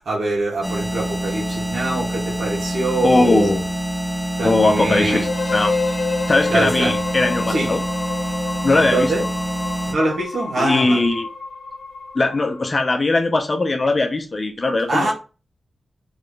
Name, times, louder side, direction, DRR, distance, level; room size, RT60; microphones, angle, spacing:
voice 1, 0.0-3.6 4.4-5.2 6.5-7.0 7.5-7.7 8.7-9.2 9.9-11.0 14.9-15.1, right 2 dB, 70° right, 2.2 m, -23 dB
sound 1, 0.6-9.9, right 1 dB, 25° right, 1.4 m, -26 dB
voice 2, 3.0-3.7 4.4-5.8 6.3-7.8 8.6-9.3 10.6-11.3 12.1-15.1, left 2 dB, 30° left, 0.8 m, -19 dB
sound 2, 5.1-12.9, left 3 dB, 60° left, 1.0 m, -28 dB
4.2 x 3.5 x 3.3 m
wide cardioid pair, 155°, 0 cm